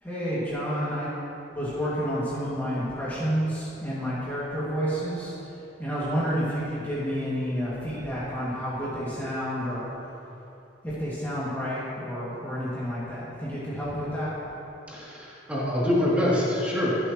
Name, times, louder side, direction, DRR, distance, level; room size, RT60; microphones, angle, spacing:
voice 1, 0.0-1.1 1.5-5.3 5.8-9.9 10.8-14.3, equal, 10° left, -10 dB, 2.3 m, -30 dB
voice 2, 14.9-17.0, left 1 dB, 10° right, -8 dB, 2.9 m, -25 dB
23.5 x 8.0 x 3.1 m, 2.9 s
head